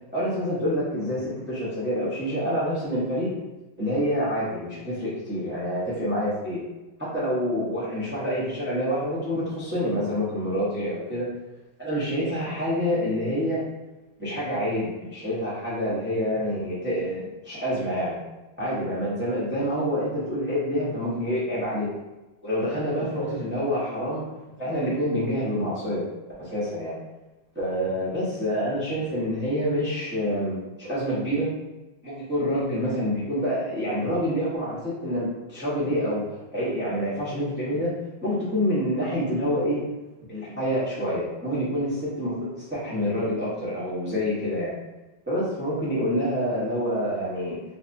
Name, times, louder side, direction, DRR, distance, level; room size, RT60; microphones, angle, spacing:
voice 1, 0.1-3.3 3.8-6.6 7.0-11.3 11.8-13.6 14.2-18.2 18.6-21.9 22.4-24.2 24.6-26.1 26.4-27.0 27.5-31.5 32.0-36.2 36.5-37.9 38.2-39.8 40.3-44.8 45.3-47.6, equal, 10° right, -9 dB, 0.5 m, -27 dB
3.3 x 3.2 x 2.6 m, 1.1 s
omnidirectional pair, 2.1 m